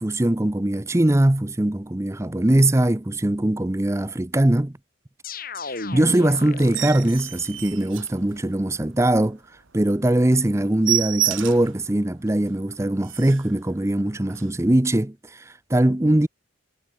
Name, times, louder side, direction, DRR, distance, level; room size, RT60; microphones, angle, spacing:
voice 1, 0.0-4.7 5.9-9.4 9.7-16.3, right 1 dB, 15° right, 0.6 m, -21 dB
sound 1, 5.2-7.5, left 3 dB, 45° left, 3.2 m, -34 dB
sound 2, 6.6-8.7 9.2-9.3 9.7-9.8 10.1-10.2 10.5-11.8 12.3-12.4 12.7-12.8 13.0-13.5 14.3-14.5, right 13 dB, 90° right, 2.1 m, -29 dB
head